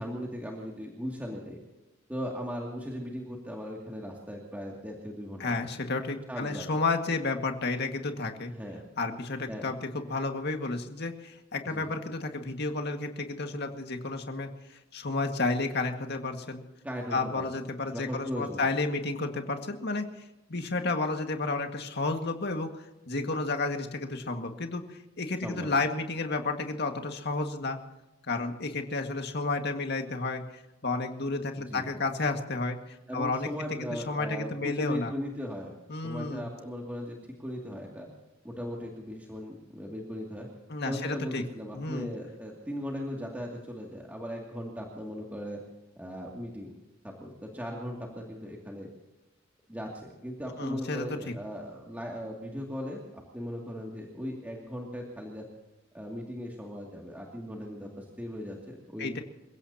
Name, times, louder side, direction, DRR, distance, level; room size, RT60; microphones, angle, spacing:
voice 1, 0.0-1.6 2.1-5.7 6.3-6.7 8.5-8.8 9.5-9.7 11.6-11.9 16.8-17.5 17.9-18.6 25.4-25.7 31.7-31.9 33.1-35.8 36.0-38.1 38.4-40.5 40.8-45.6 46.0-46.7 47.0-48.9 49.7-55.4 55.9-59.2, equal, 10° right, -2 dB, 2.5 m, -38 dB
voice 2, 5.4-8.5 9.0-16.6 17.1-20.1 20.5-27.8 28.2-33.5 33.8-35.1 35.9-36.5 40.7-41.4 41.7-42.1 50.6-51.3 59.0-59.2, left 3 dB, 55° left, 5 dB, 1.9 m, -31 dB
28.0 x 16.5 x 2.9 m, 0.97 s
head